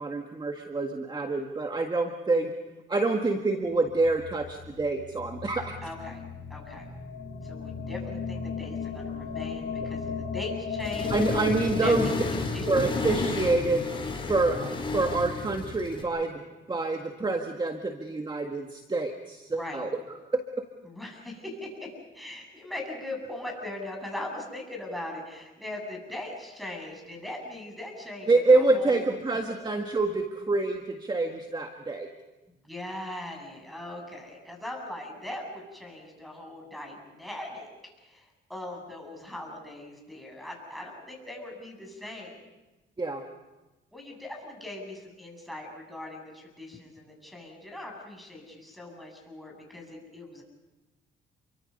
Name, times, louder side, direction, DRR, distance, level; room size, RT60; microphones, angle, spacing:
voice 1, 0.0-2.5 2.9-5.8 11.1-12.1 12.7-13.9 14.3-19.9 20.3-20.4 28.3-32.1 43.0-43.2, right 3 dB, 20° right, 4 dB, 1.8 m, -26 dB
sound 1, 3.6-15.9, left 5 dB, 60° left, 2.7 m, -37 dB
voice 2, 5.8-6.2 6.5-6.9 7.4-11.2 11.8-12.1 12.5-12.9 19.5-19.9 20.8-29.0 32.6-37.7 38.0-42.4 43.9-50.4, left 1 dB, ahead, 0 dB, 7.9 m, -40 dB
Accelerating revving vroom, 10.8-16.0, left 3 dB, 25° left, 3.7 m, -32 dB
29.0 x 24.0 x 5.5 m, 1.1 s
cardioid pair, 90°, 20 cm